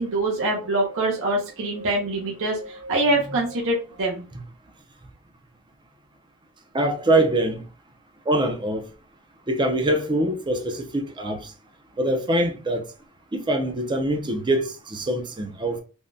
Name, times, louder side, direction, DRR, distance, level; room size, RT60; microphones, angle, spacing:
voice 1, 0.0-4.2, right 2 dB, 65° right, 0.7 m, -24 dB
voice 2, 6.7-7.6 8.3-8.9 9.5-11.5 12.0-12.9 13.3-15.8, right 1 dB, 20° right, 0.5 m, -24 dB
3.4 x 2.2 x 2.5 m
head